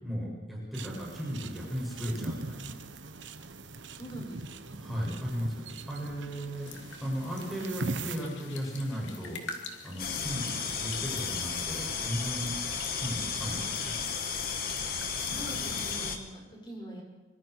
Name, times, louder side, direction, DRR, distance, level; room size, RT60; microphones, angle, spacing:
voice 1, 0.0-2.8 4.8-12.5 13.0-13.9, equal, ahead, -5 dB, 7.3 m, -36 dB
sound 1, 0.7-8.2, right 3 dB, 80° right, 1.3 m, -41 dB
voice 2, 3.7-4.8 6.0-6.1 15.2-17.0, right 1 dB, 25° left, 0 dB, 6.4 m, -44 dB
sound 2, 6.7-16.2, left 4 dB, 80° left, 3.0 m, -47 dB
sound 3, 10.0-16.2, left 6 dB, 55° left, 2.1 m, -33 dB
25.0 x 25.0 x 4.9 m, 1.2 s
head